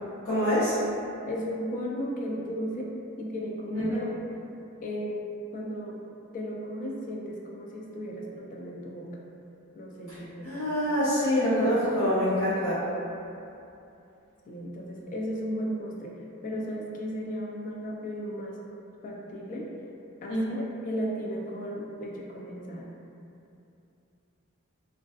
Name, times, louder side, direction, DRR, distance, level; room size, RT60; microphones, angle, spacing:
voice 1, 0.2-0.8 3.7-4.0 10.1-10.2 10.4-12.8 20.3-20.6, equal, 75° left, -14 dB, 0.7 m, -25 dB
voice 2, 1.3-2.9 3.2-4.1 4.8-5.2 5.4-6.0 6.3-9.2 9.8-10.6 14.5-18.6 19.0-19.8 20.2-22.9, equal, 40° left, -2 dB, 0.3 m, -35 dB
2.3 x 2.3 x 2.3 m, 2.7 s
head